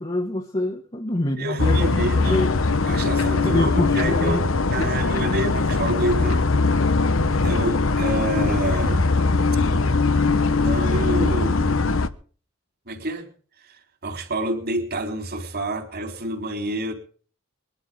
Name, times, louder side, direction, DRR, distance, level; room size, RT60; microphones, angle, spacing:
voice 1, 0.0-2.5 3.4-4.4 4.8-4.9, left 1 dB, 25° left, 1.6 m, -26 dB
voice 2, 1.4-2.5 2.9-4.4 4.7-6.5 7.3-9.0 10.6-11.7 12.9-13.3 13.6-16.9, right 1 dB, 50° right, 4.1 m, -28 dB
sound 1, 1.6-12.1, left 3 dB, 70° left, 1.1 m, -21 dB
23.0 x 12.0 x 3.9 m
head